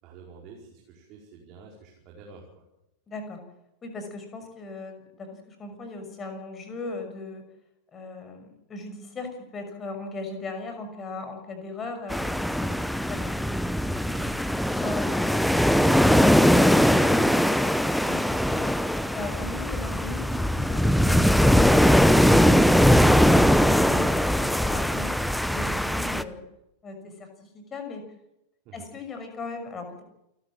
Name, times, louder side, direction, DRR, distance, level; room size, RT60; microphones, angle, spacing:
voice 1, 0.0-2.6 14.1-14.3 28.6-28.9, right 5 dB, 40° right, -1 dB, 5.0 m, -48 dB
voice 2, 3.1-3.4 3.8-7.4 7.9-16.3 18.0-18.7 19.1-23.3 23.6-26.4 26.8-28.1 28.7-30.0, left 3 dB, 20° left, 6 dB, 6.1 m, -39 dB
sound 1, 12.1-26.2, equal, ahead, 0.9 m, -21 dB
28.5 x 14.0 x 7.7 m, 0.87 s
figure-of-eight pair, 90°, 0 cm